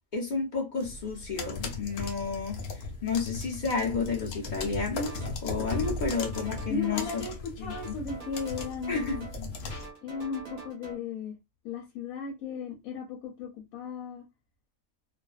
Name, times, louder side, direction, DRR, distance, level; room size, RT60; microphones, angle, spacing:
voice 1, 0.1-7.1 7.6-7.7 8.9-9.2, left 5 dB, 45° left, 0.7 m, -31 dB
sound 1, 0.8-9.9, left 3 dB, 70° left, 1.0 m, -37 dB
sound 2, 5.0-5.4 5.7-7.4 7.7-9.4 9.7-10.9, right 4 dB, 45° right, 0.5 m, -44 dB
voice 2, 6.7-9.5 10.0-11.3 11.6-14.3, left 5 dB, 90° left, 1.1 m, -36 dB
2.4 x 2.2 x 2.3 m
omnidirectional pair, 1.5 m